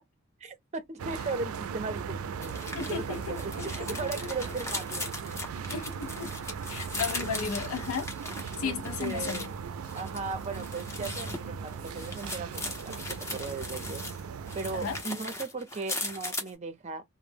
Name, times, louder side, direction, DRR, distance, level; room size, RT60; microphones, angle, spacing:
voice 1, 0.4-5.2 8.6-9.5 9.9-14.0 14.5-17.0, right 4 dB, 30° right, 0.5 m, -37 dB
sound 1, 1.0-15.0, right 6 dB, 90° right, 0.3 m, -38 dB
sound 2, 2.4-9.5 9.8-14.2 14.5-16.5, left 2 dB, 15° left, 0.5 m, -38 dB
voice 2, 2.7-4.1 5.7-6.3 6.7-8.1 8.6-9.4 14.7-15.0, left 6 dB, 85° left, 0.5 m, -35 dB
2.0 x 2.0 x 3.2 m
head